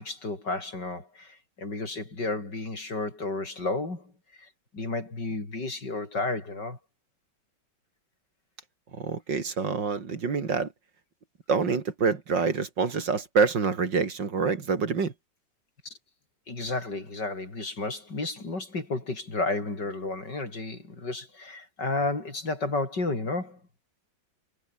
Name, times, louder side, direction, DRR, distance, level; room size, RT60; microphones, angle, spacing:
voice 1, 0.0-4.1 4.4-6.8 15.8-15.9 16.5-23.6, left 3 dB, 60° left, 6.1 m, -32 dB
voice 2, 9.0-10.7 11.5-15.1, right 5 dB, 70° right, 3.3 m, -26 dB
omnidirectional pair, 2.1 m